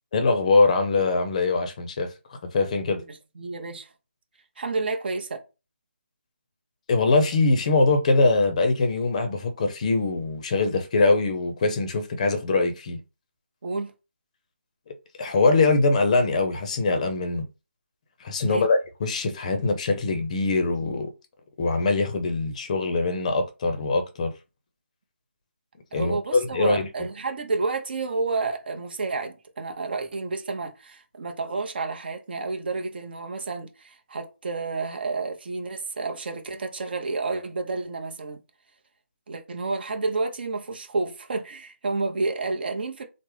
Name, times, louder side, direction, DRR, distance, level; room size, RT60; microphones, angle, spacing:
voice 1, 0.1-3.0 6.9-13.0 14.9-17.5 18.2-21.1 21.6-24.3 25.9-26.9, left 3 dB, 30° left, 0.5 m, -23 dB
voice 2, 3.1-3.9 4.6-5.4 13.6-13.9 18.4-18.7 25.9-38.4 39.3-43.0, right 3 dB, 45° right, 0.7 m, -30 dB
3.4 x 2.0 x 3.1 m
figure-of-eight pair, 160°, 7 cm